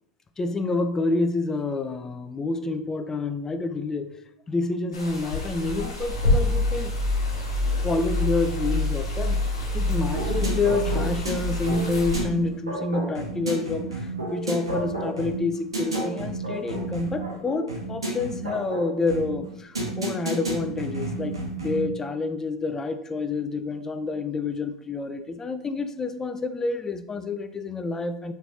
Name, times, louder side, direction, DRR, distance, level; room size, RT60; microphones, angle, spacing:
voice 1, 0.4-4.2 4.5-6.9 7.8-9.4 9.7-28.3, left 3 dB, 20° left, 9 dB, 0.3 m, -28 dB
sound 1, 4.9-12.2, left 3 dB, 85° left, 0.7 m, -31 dB
sound 2, 6.1-13.3, left 2 dB, 15° right, 0.7 m, -28 dB
sound 3, 10.1-21.9, right 2 dB, 90° right, 0.8 m, -31 dB
3.1 x 3.0 x 2.7 m, 0.79 s
hypercardioid pair, 85°, 3 cm